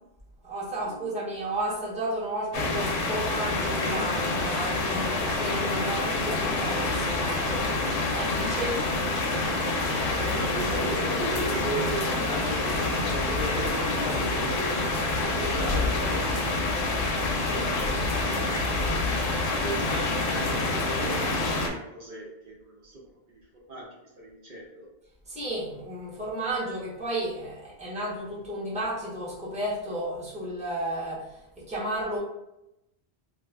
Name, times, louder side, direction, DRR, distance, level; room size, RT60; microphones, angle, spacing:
voice 1, 0.4-7.7 8.1-8.8 25.3-32.2, right 1 dB, 5° right, -7 dB, 0.8 m, -33 dB
sound 1, 2.5-21.7, left 2 dB, 60° left, 0.7 m, -27 dB
voice 2, 9.7-16.6 19.2-23.0 23.3-23.4 23.7-24.9, right 1 dB, 55° right, -5 dB, 0.8 m, -37 dB
2.4 x 2.3 x 3.3 m, 0.87 s
omnidirectional pair, 1.1 m